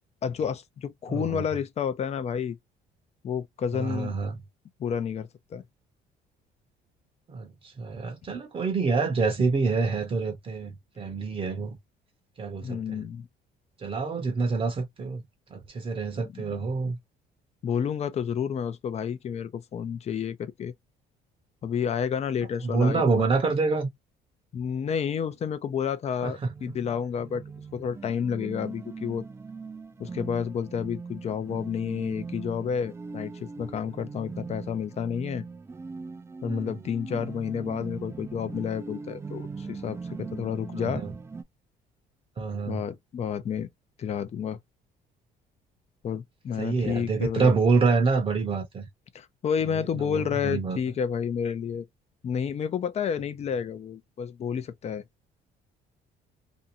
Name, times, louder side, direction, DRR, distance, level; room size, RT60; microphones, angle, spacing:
voice 1, 0.2-2.6 3.2-4.1 4.8-5.6 12.6-13.3 16.3-16.6 17.6-20.7 21.6-23.3 24.5-27.4 27.7-29.2 30.0-35.4 36.4-41.0 42.7-43.7 44.0-44.6 46.0-47.6 49.1-51.8 52.2-55.0, left 7 dB, 40° left, 0.5 m, -30 dB
voice 2, 1.1-1.4 3.7-4.4 7.3-11.8 12.4-13.0 13.8-15.2 15.5-17.0 22.6-23.9 26.2-26.5 36.5-36.8 40.8-41.1 42.4-42.9 46.6-48.9 49.7-50.8, right 4 dB, 35° right, 0.8 m, -27 dB
sound 1, 26.2-41.4, right 4 dB, 15° right, 0.4 m, -40 dB
2.6 x 2.2 x 2.6 m
cardioid pair, 110°, 17 cm